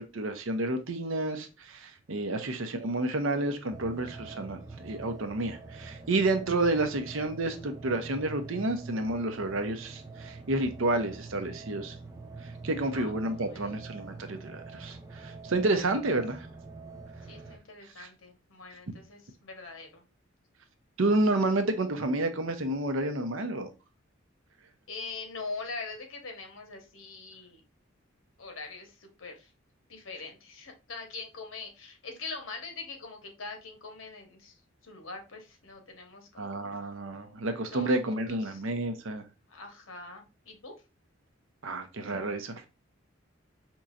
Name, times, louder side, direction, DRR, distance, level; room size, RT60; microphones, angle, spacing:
voice 1, 0.0-4.6 4.8-12.0 12.4-16.5 18.0-18.1 21.0-23.7 36.4-39.2 41.6-42.7, right 2 dB, 75° right, 0.7 m, -30 dB
voice 2, 2.3-2.8 10.9-11.3 11.5-12.3 12.9-13.8 15.8-15.9 17.2-20.0 24.9-27.6 28.4-29.5 29.9-34.6 34.8-36.9 37.7-38.6 39.5-40.7, left 3 dB, 80° left, 1.1 m, -43 dB
sound 1, 3.7-17.6, right 3 dB, 15° right, 0.4 m, -45 dB
5.3 x 3.0 x 2.4 m
head